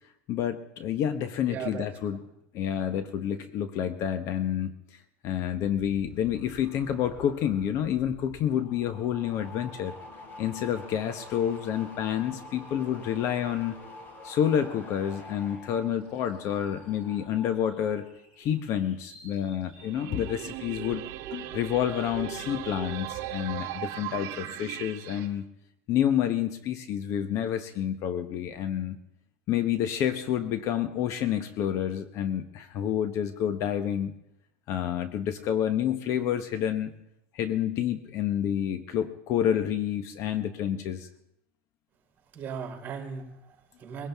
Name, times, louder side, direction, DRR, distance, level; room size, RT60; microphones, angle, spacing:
voice 1, 0.3-2.2 2.5-4.8 5.2-9.9 10.4-13.8 14.2-18.1 18.4-21.0 21.3-25.4 25.9-29.0 29.5-34.1 34.7-36.9 37.3-41.1, left 10 dB, 50° left, 10 dB, 1.1 m, -29 dB
voice 2, 1.5-1.8 42.3-44.1, right 6 dB, 30° right, 2 dB, 4.8 m, -37 dB
sound 1, 5.4-18.1 18.4-18.8, left 2 dB, 30° left, 3.0 m, -47 dB
sound 2, 15.6-20.0, left 1 dB, 90° left, 7.0 m, -58 dB
sound 3, 19.8-25.3, right 12 dB, 55° right, 1.1 m, -38 dB
21.5 x 17.0 x 3.6 m, 0.80 s
supercardioid pair, 130°, 7 cm